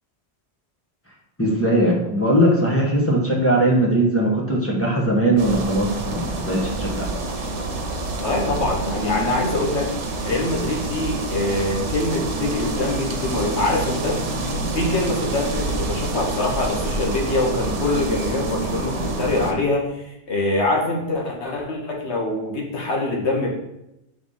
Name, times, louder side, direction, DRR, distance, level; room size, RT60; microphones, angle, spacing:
voice 1, 1.4-7.1, right 1 dB, 10° left, -3 dB, 1.2 m, -20 dB
sound 1, 5.4-19.5, right 2 dB, 85° right, 1.2 m, -27 dB
voice 2, 8.2-9.9 10.2-14.2 14.7-23.5, left 2 dB, 70° left, -1 dB, 1.4 m, -24 dB
4.9 x 3.5 x 5.5 m, 0.86 s
omnidirectional pair, 1.2 m